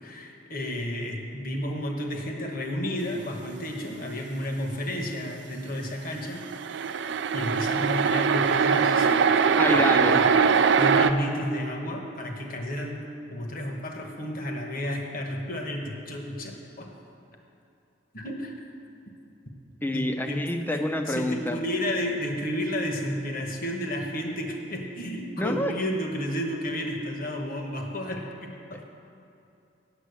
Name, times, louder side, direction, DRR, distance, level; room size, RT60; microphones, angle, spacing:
voice 1, 0.0-7.0 7.3-13.0 13.3-16.9 18.1-18.5 19.9-20.8 21.1-28.9, equal, 45° left, 2 dB, 1.1 m, -32 dB
sound 1, 6.4-11.1, right 6 dB, 60° right, 0.4 m, -22 dB
voice 2, 9.6-10.2 19.8-21.6 25.4-25.7 28.7-28.9, left 1 dB, 10° left, 6 dB, 0.5 m, -27 dB
8.2 x 7.3 x 8.2 m, 2.8 s
head